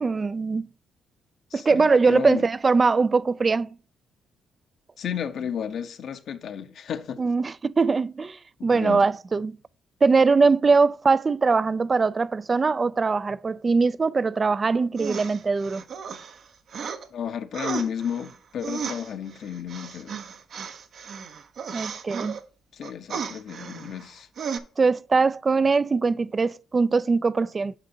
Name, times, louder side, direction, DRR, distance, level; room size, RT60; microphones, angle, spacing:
voice 1, 0.0-0.7 1.5-3.7 7.2-9.6 10.0-15.8 21.7-22.4 24.8-27.7, right 4 dB, 30° right, 0.3 m, -22 dB
voice 2, 1.5-2.5 5.0-7.2 8.6-9.1 17.1-20.2 22.7-24.3, left 8 dB, 65° left, 0.9 m, -32 dB
sound 1, 15.0-17.1 17.5-22.4 22.8-24.1 24.4-24.6, right 6 dB, 60° right, 0.8 m, -35 dB
9.9 x 5.4 x 2.8 m
cardioid pair, 90°, 0 cm